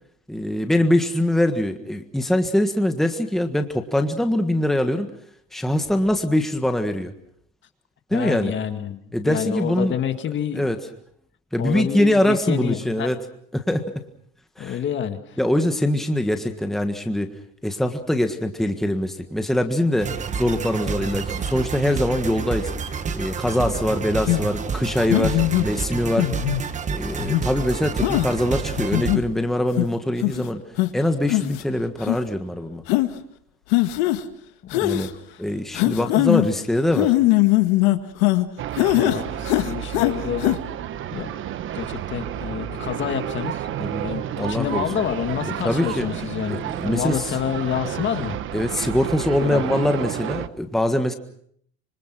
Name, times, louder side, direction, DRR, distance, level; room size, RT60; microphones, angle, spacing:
voice 1, 0.3-5.1 5.5-7.1 8.1-8.5 9.1-9.9 10.5-10.8 11.5-13.2 13.5-13.8 14.6-14.8 15.4-17.3 17.6-20.1 20.4-22.7 23.1-26.3 26.9-30.6 30.9-32.8 34.8-35.1 35.4-37.1 39.0-39.2 43.8-44.8 45.6-46.1 46.5-47.2 48.5-51.1, left 1 dB, ahead, 6 dB, 1.5 m, -23 dB
voice 2, 8.1-10.7 11.6-13.1 14.6-15.4 34.6-35.4 35.7-36.1 38.9-40.5 41.1-43.7 44.0-48.4 49.4-49.7, left 9 dB, 35° left, 8 dB, 1.9 m, -28 dB
sound 1, 20.0-29.2, right 5 dB, 25° right, 1.4 m, -29 dB
sound 2, 24.3-24.4 25.1-25.7 26.2-26.6 27.2-27.4 28.0-28.3 28.8-29.2 29.8-29.9 30.2-30.4 30.8-30.9 31.3-31.6 32.0-32.2 32.9-33.1 33.7-34.2 34.7-35.1 35.7-36.5 36.9-38.5 38.8-39.2 39.5-40.1 40.4-40.6, left 18 dB, 85° left, 1.8 m, -20 dB
sound 3, 38.6-50.5, right 11 dB, 40° right, 1.1 m, -31 dB
26.0 x 25.0 x 6.1 m, 0.65 s
cardioid pair, 145°, 32 cm